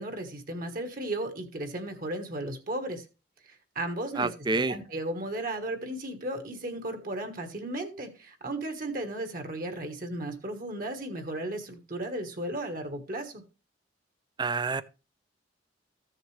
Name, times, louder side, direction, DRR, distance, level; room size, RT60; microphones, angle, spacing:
voice 1, 0.0-3.0 3.4-4.3 4.7-13.4, right 1 dB, 50° right, 1.4 m, -35 dB
voice 2, 4.2-4.8 14.4-14.8, right 3 dB, 25° right, 0.4 m, -28 dB
14.5 x 6.5 x 3.2 m
head